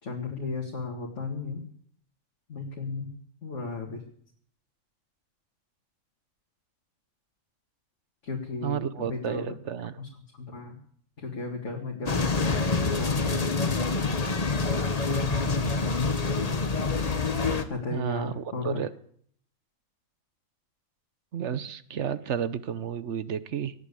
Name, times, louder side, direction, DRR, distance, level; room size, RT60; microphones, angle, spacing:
voice 1, 0.0-1.6 2.5-3.1 3.4-4.0 8.2-9.5 10.0-10.1 10.4-10.8 11.2-13.8 17.7-18.8, left 4 dB, 55° left, -1 dB, 2.4 m, -35 dB
voice 2, 8.6-10.0 17.9-18.9 21.3-23.7, right 8 dB, 60° right, 14 dB, 1.1 m, -31 dB
sound 1, 12.1-17.6, left 3 dB, 30° left, 1.1 m, -26 dB
18.0 x 9.3 x 8.5 m, 0.63 s
omnidirectional pair, 1.5 m